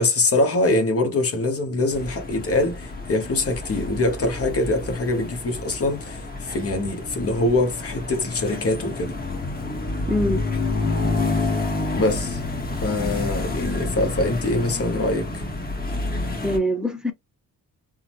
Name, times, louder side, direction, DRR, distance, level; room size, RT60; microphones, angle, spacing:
voice 1, 0.0-9.1 11.9-12.4 12.8-15.4, left 2 dB, 40° left, 1.0 m, -23 dB
sound 1, 1.9-16.6, left 2 dB, 25° left, 1.3 m, -29 dB
voice 2, 10.1-10.4 16.4-17.1, equal, ahead, 0.8 m, -23 dB
3.6 x 2.1 x 3.0 m
cardioid pair, 120°, 35 cm